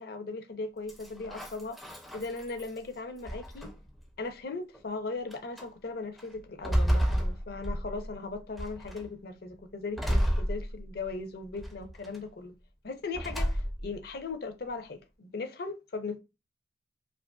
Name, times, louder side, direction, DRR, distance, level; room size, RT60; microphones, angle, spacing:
voice 1, 0.0-3.7 4.2-12.5 12.8-16.2, left 3 dB, 55° left, 0.5 m, -38 dB
sound 1, 0.9-2.8 3.3-4.0 4.7-4.8 5.3-5.7 6.2-8.1 8.6-9.1 10.0-11.1 11.6-12.2 13.1-14.0, equal, ahead, 0.4 m, -31 dB
2.8 x 2.5 x 2.2 m
head